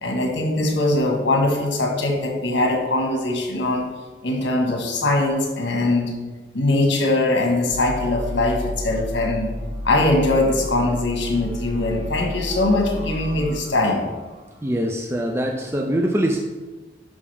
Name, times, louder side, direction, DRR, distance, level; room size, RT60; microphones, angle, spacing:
voice 1, 0.0-3.9 4.2-6.1 6.5-9.5 9.8-14.0, left 2 dB, 85° left, 2 dB, 1.7 m, -21 dB
sound 1, 7.7-14.7, left 1 dB, 40° right, 1.4 m, -32 dB
voice 2, 14.6-16.4, right 1 dB, 15° right, 1 dB, 0.4 m, -23 dB
9.9 x 5.8 x 3.5 m, 1.3 s
head